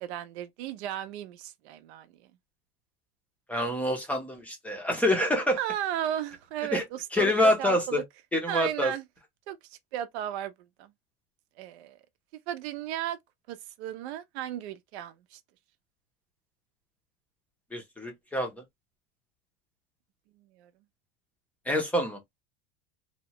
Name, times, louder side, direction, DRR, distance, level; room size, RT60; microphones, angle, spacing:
voice 1, 0.0-2.2 5.6-8.0 8.5-9.0 9.5-9.6 9.9-10.5 10.8-10.9 11.6-12.0 12.5-13.2 13.5-15.4 20.6-20.7, right 11 dB, 80° right, 0.7 m, -34 dB
voice 2, 3.5-5.6 6.7-6.8 7.1-8.0 8.3-8.9 17.7-18.5 21.7-22.2, left 1 dB, 5° left, 0.5 m, -26 dB
2.9 x 2.1 x 2.8 m
supercardioid pair, 165°, 32 cm